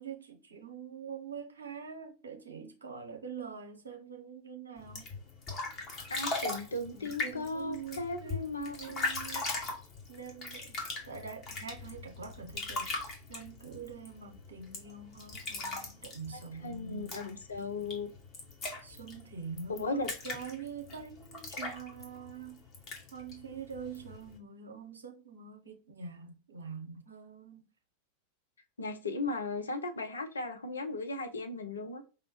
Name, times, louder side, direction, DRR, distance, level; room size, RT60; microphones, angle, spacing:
voice 1, 0.0-5.1 6.5-6.6 6.9-8.5 8.8-9.5 10.1-10.8 11.1-12.9 13.3-17.2 18.8-22.6 23.1-27.6, right 6 dB, 75° right, 0.8 m, -45 dB
sound 1, 4.8-24.4, left 3 dB, 30° left, 1.3 m, -40 dB
voice 2, 6.1-8.7 16.6-18.1 19.8-20.1 28.8-32.0, left 2 dB, 75° left, 0.6 m, -36 dB
5.1 x 2.1 x 2.9 m
figure-of-eight pair, 90°, 0 cm